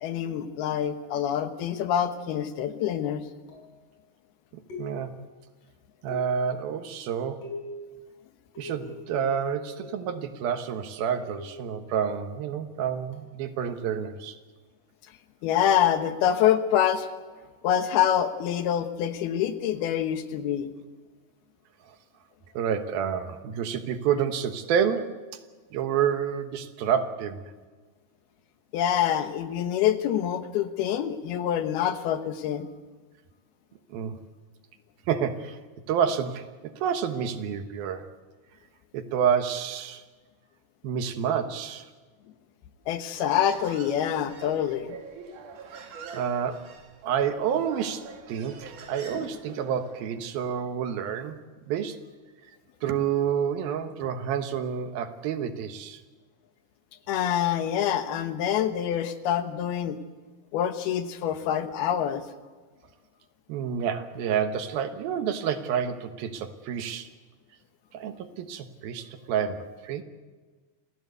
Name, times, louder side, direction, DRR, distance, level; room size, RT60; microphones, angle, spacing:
voice 1, 0.0-3.2 15.4-17.1 17.6-20.7 28.7-32.7 42.9-45.0 49.1-49.3 57.1-60.0 60.5-62.2, left 10 dB, 90° left, 9 dB, 3.2 m, -26 dB
sound 1, 1.7-2.2 3.5-3.8 4.7-5.3 6.1-6.6 7.4-7.9 8.5-10.2 11.3-11.7 13.1-13.4, left 2 dB, 45° left, 6.8 m, -42 dB
voice 2, 4.5-5.1 6.0-7.4 8.6-14.4 22.5-25.2 25.7-27.4 33.9-34.2 35.1-35.6 35.9-36.4 36.8-38.1 38.9-40.0 40.8-41.8 46.1-46.6 47.0-51.4 51.7-52.0 52.8-56.0 63.5-67.1 67.9-70.0, right 8 dB, 75° right, 8 dB, 3.0 m, -29 dB
Human voice, 43.1-50.2, right 5 dB, 60° right, 3.5 m, -45 dB
27.0 x 16.0 x 8.1 m, 1.4 s
omnidirectional pair, 4.4 m